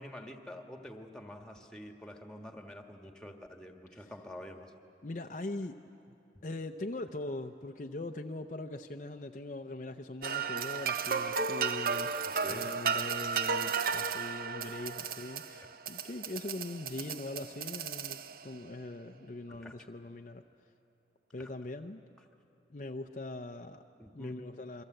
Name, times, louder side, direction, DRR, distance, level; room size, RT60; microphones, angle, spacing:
voice 1, 0.0-4.7 12.3-12.7 19.6-19.7 21.4-21.5 24.0-24.4, left 1 dB, 5° left, 3 dB, 1.5 m, -47 dB
voice 2, 5.0-5.8 6.4-20.4 21.3-22.0 22.7-23.8 24.1-24.8, left 2 dB, 45° left, 5 dB, 0.6 m, -41 dB
sound 1, 10.2-18.6, right 6 dB, 50° right, 0.7 m, -34 dB
28.0 x 23.5 x 7.8 m, 2.8 s
head